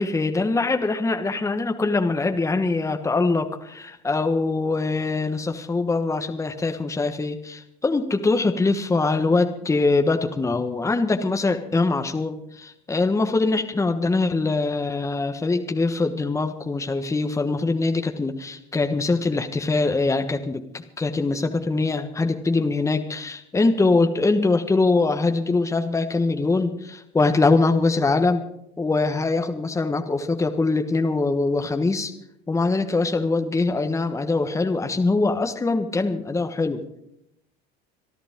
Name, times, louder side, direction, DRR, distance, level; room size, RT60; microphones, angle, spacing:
voice 1, 0.0-28.4 28.8-32.1 32.5-36.8, left 3 dB, 15° left, 6 dB, 1.4 m, -23 dB
26.5 x 11.0 x 3.7 m, 0.76 s
supercardioid pair, 105°, 21 cm